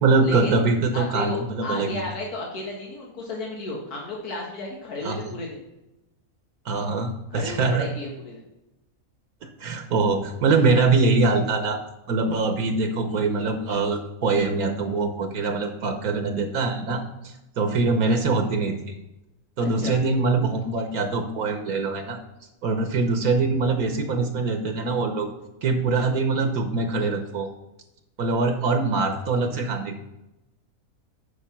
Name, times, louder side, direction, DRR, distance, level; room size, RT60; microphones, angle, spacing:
voice 1, 0.0-2.0 5.0-5.2 6.6-7.9 9.6-11.8 12.1-18.9 19.6-22.2 22.6-25.3 25.6-27.5 28.2-30.0, right 3 dB, 75° right, 6 dB, 1.4 m, -23 dB
voice 2, 0.9-5.6 7.3-8.4 19.8-19.9, left 2 dB, 85° left, -2 dB, 2.1 m, -33 dB
8.3 x 5.6 x 5.7 m, 0.95 s
omnidirectional pair, 1.6 m